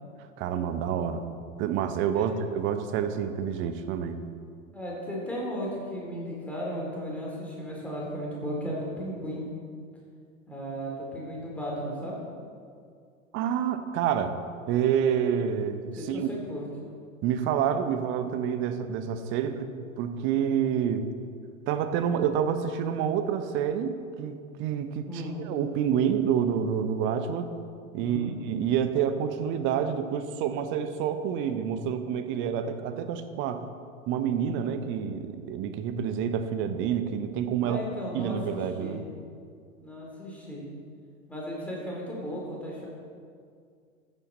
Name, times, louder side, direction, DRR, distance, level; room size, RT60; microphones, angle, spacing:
voice 1, 0.4-1.3 1.6-4.3 13.3-14.4 14.7-16.3 17.2-19.7 20.0-21.1 21.7-27.5 27.9-33.6 34.1-37.8 38.1-39.0, right 8 dB, 30° right, 9 dB, 0.8 m, -28 dB
voice 2, 4.7-9.4 10.5-12.2 15.9-16.6 25.1-25.4 28.0-28.3 37.6-39.0 39.8-40.6 41.3-42.9, equal, 5° left, -5 dB, 3.3 m, -35 dB
14.0 x 9.3 x 4.0 m, 2.2 s
figure-of-eight pair, 95°, 41 cm